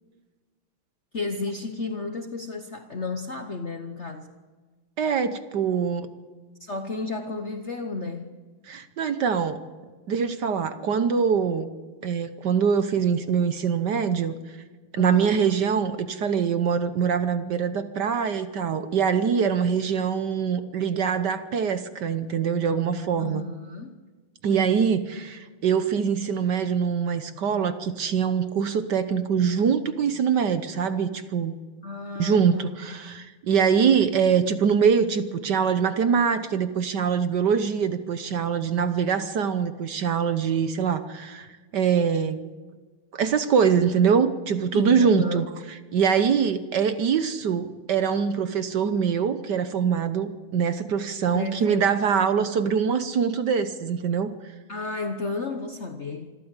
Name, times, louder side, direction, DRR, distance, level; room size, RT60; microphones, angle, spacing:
voice 1, 1.1-4.3 6.6-8.4 14.9-15.4 23.2-24.0 31.8-32.7 38.6-38.7 44.7-45.5 51.3-52.0 54.7-56.3, left 3 dB, 45° left, 6 dB, 0.9 m, -33 dB
voice 2, 5.0-6.1 8.7-9.6 10.1-11.7 12.0-14.3 14.9-23.4 24.4-31.5 32.2-42.4 43.1-45.5 45.9-54.3, right 6 dB, 60° right, 11 dB, 1.3 m, -23 dB
26.0 x 13.5 x 8.2 m, 1.4 s
omnidirectional pair, 2.4 m